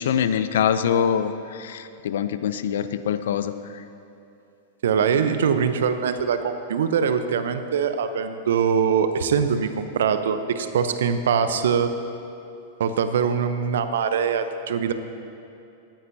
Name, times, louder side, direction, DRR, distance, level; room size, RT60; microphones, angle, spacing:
voice 1, 0.0-3.5, left 8 dB, 65° left, 12 dB, 0.6 m, -24 dB
voice 2, 4.8-11.9 12.8-14.9, right 7 dB, 65° right, 9 dB, 0.9 m, -23 dB
19.0 x 15.0 x 2.9 m, 2.7 s
figure-of-eight pair, 100°, 0 cm